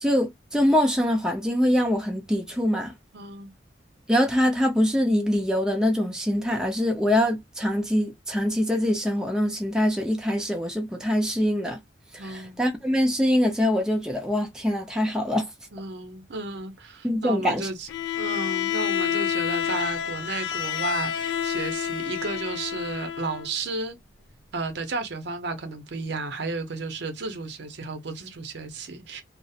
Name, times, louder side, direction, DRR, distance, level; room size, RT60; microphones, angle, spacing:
voice 1, 0.0-2.9 4.1-11.8 12.1-15.4 17.0-17.7, equal, 5° right, 0.5 m, -24 dB
voice 2, 3.1-3.5 12.2-12.6 15.7-17.9 18.2-23.9 24.5-29.2, right 3 dB, 65° right, 0.6 m, -33 dB
Bowed string instrument, 17.9-23.5, left 9 dB, 70° left, 0.3 m, -28 dB
2.4 x 2.0 x 2.7 m
head